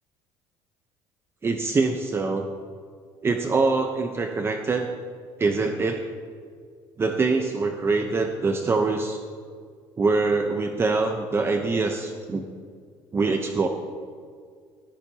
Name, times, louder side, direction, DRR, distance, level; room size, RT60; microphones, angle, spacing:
voice 1, 1.4-2.5 3.2-4.9 5.4-6.0 7.0-9.2 10.0-12.5 13.1-13.7, right 3 dB, 25° right, 5 dB, 0.8 m, -24 dB
18.0 x 13.5 x 2.9 m, 2.1 s
cardioid pair, 115°, 10 cm